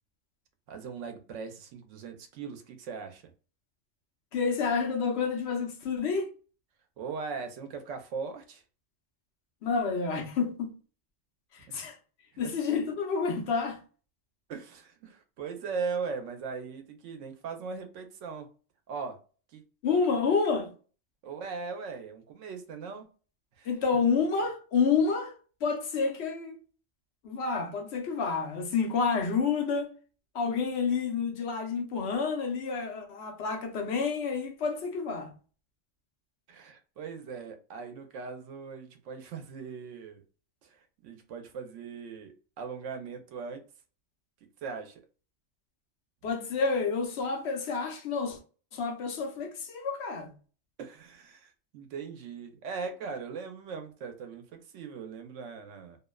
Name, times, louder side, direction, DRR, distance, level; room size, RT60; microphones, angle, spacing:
voice 1, 0.7-3.2 7.0-8.6 11.7-11.8 14.5-18.5 18.9-19.2 19.5-19.6 21.2-23.1 23.6-23.7 36.5-40.2 40.6-43.6 44.6-45.0 50.8-56.0, right 5 dB, 85° right, 0.9 m, -39 dB
voice 2, 4.3-6.3 9.6-10.7 11.5-12.0 12.4-13.8 19.8-20.7 23.6-25.3 25.6-26.6 27.2-29.9 30.3-35.3 46.2-48.4 48.7-50.3, left 5 dB, 65° left, 0.9 m, -29 dB
2.7 x 2.0 x 2.2 m
omnidirectional pair, 1.2 m